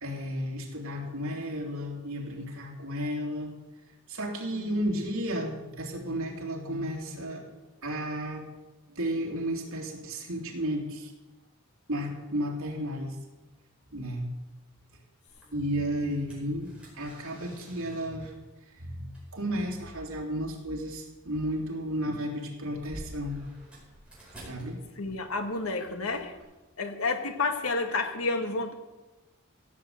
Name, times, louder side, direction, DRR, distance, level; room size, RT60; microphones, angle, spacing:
voice 1, 0.0-3.5 4.1-7.4 7.8-8.4 8.9-11.1 11.9-13.2 13.9-14.3 15.5-16.7 16.9-18.3 18.7-23.5 24.4-25.2, equal, 80° right, 0 dB, 3.1 m, -33 dB
sound 1, 15.3-26.4, right 1 dB, 5° right, 4.7 m, -52 dB
voice 2, 25.0-26.4 26.8-28.7, left 3 dB, 85° left, 6 dB, 1.7 m, -30 dB
16.0 x 7.4 x 8.0 m, 1.1 s
head